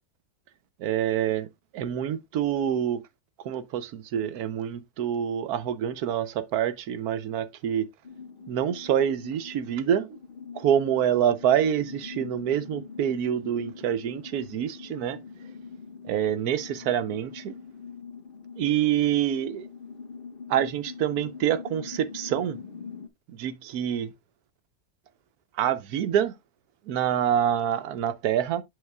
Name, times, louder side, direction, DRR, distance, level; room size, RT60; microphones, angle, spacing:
voice 1, 0.8-1.5 1.7-3.0 3.4-7.9 8.5-10.2 10.5-15.2 16.1-17.5 18.6-19.7 20.5-22.6 23.3-24.1 25.6-26.3 26.9-28.6, right 9 dB, 85° right, 1.2 m, -26 dB
sound 1, 8.0-23.1, left 5 dB, 45° left, 0.9 m, -43 dB
7.9 x 7.2 x 2.3 m
omnidirectional pair, 1.6 m